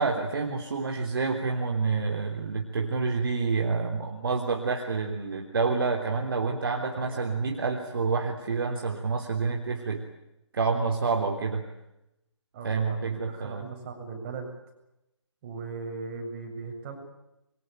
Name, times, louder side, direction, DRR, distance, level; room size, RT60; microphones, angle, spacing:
voice 1, 0.0-10.0 10.5-11.6 12.6-13.6, right 4 dB, 50° right, 3 dB, 3.4 m, -28 dB
voice 2, 6.8-7.3 12.5-14.5 15.4-17.0, right 4 dB, 25° right, 2 dB, 7.3 m, -38 dB
26.5 x 23.5 x 9.2 m, 0.89 s
figure-of-eight pair, 150°, 16 cm